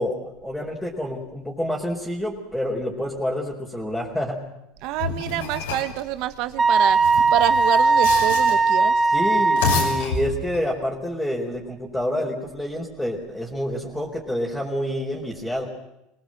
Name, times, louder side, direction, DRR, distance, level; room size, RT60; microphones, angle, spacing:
voice 1, 0.0-4.4 9.1-15.7, equal, 5° left, -3 dB, 4.3 m, -28 dB
voice 2, 4.8-7.0 7.3-8.9, right 14 dB, 60° right, 12 dB, 1.5 m, -27 dB
sound 1, 5.0-6.0 6.9-8.7 9.4-10.7, left 5 dB, 85° left, 6.2 m, -29 dB
Wind instrument woodwind instrument, 6.6-10.1, right 4 dB, 20° right, 0.8 m, -19 dB
25.5 x 19.0 x 7.8 m, 0.88 s
hypercardioid pair, 90°, 0 cm